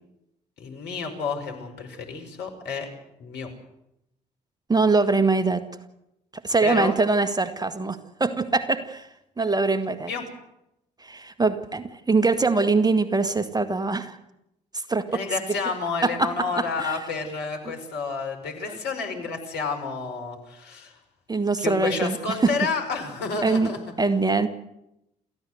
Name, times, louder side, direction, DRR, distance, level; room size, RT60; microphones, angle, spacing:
voice 1, 0.6-2.9 3.2-3.5 6.6-7.0 10.1-10.2 15.1-20.9 21.6-23.8, left 4 dB, 60° left, 4 dB, 5.4 m, -30 dB
voice 2, 4.7-5.6 6.4-9.1 9.4-10.1 11.0-14.2 14.7-15.0 16.0-16.3 16.8-17.0 17.6-17.7 18.7-18.8 21.3-22.2 22.4-22.5 23.4-23.7 24.0-24.5, right 3 dB, 20° right, 9 dB, 2.0 m, -23 dB
28.5 x 15.0 x 8.1 m, 0.85 s
figure-of-eight pair, 50°, 20 cm